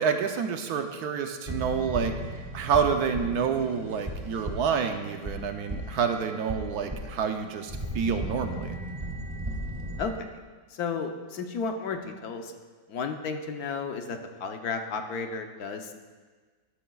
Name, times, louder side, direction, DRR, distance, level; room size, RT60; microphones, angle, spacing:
voice 1, 0.0-2.1 2.5-8.8, right 6 dB, 70° right, 6 dB, 1.1 m, -28 dB
sound 1, 1.5-10.0, right 1 dB, 20° right, 1.3 m, -36 dB
voice 2, 10.7-12.5 12.9-15.9, left 5 dB, 65° left, 5 dB, 1.2 m, -33 dB
12.5 x 12.0 x 2.3 m, 1.4 s
omnidirectional pair, 1.8 m